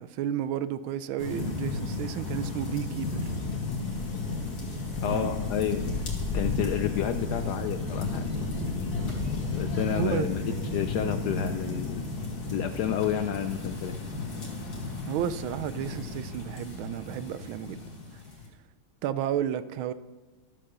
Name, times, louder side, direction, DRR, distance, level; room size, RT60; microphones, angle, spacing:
voice 1, 0.0-3.2 5.0-5.3 9.9-10.3 15.1-17.8 19.0-19.9, right 10 dB, 80° right, 1.4 m, -32 dB
sound 1, 1.2-18.5, left 3 dB, 50° left, 2.6 m, -33 dB
voice 2, 5.0-5.9 6.3-8.3 9.5-10.4 10.7-12.0 12.5-14.0, left 10 dB, 80° left, 0.9 m, -30 dB
13.0 x 7.6 x 6.7 m
omnidirectional pair, 2.2 m